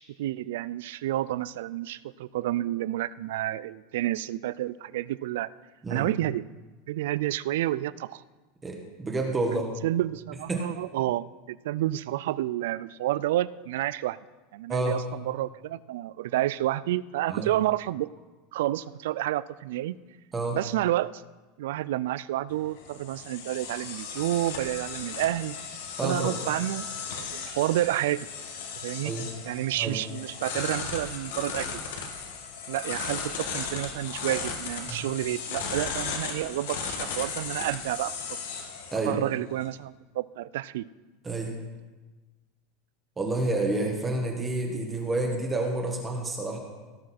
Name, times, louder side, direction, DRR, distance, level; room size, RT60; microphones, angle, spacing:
voice 1, 0.0-5.5 5.9-6.4 6.9-8.2 9.4-14.2 14.5-18.1 18.5-20.0 20.5-21.2 21.6-25.6 26.0-26.9 27.2-28.3 28.8-29.1 29.5-31.8 32.7-38.1 39.1-40.9, right 14 dB, 70° right, 19 dB, 0.3 m, -30 dB
voice 2, 8.6-9.7 10.5-10.6 14.7-15.0 17.3-17.5 20.3-20.6 26.0-26.4 29.0-29.3 29.8-30.0 34.9-35.1 38.9-39.2 41.2-41.5 43.2-46.6, right 2 dB, 10° right, 1 dB, 1.2 m, -29 dB
sound 1, 22.5-39.7, left 5 dB, 90° left, 1.8 m, -36 dB
17.0 x 6.4 x 4.2 m, 1.2 s
supercardioid pair, 175°, 0 cm